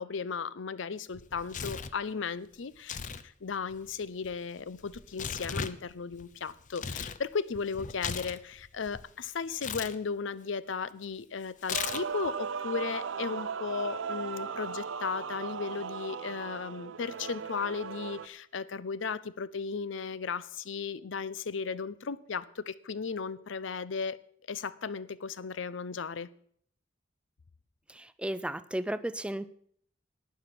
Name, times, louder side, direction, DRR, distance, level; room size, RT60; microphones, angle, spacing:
voice 1, 0.0-3.0 3.4-24.2 24.5-26.3, left 5 dB, 80° left, 18 dB, 0.6 m, -35 dB
Tearing, 1.1-2.0 2.8-3.2 3.5-7.2 7.5-9.0 9.6-9.9 11.6-12.3, left 6 dB, 40° left, 0.6 m, -37 dB
Male singing / Female singing / Musical instrument, 11.7-18.3, right 6 dB, 85° right, 0.6 m, -37 dB
voice 2, 27.9-29.5, right 1 dB, 5° right, 15 dB, 0.5 m, -34 dB
12.0 x 9.4 x 5.9 m, 0.62 s
head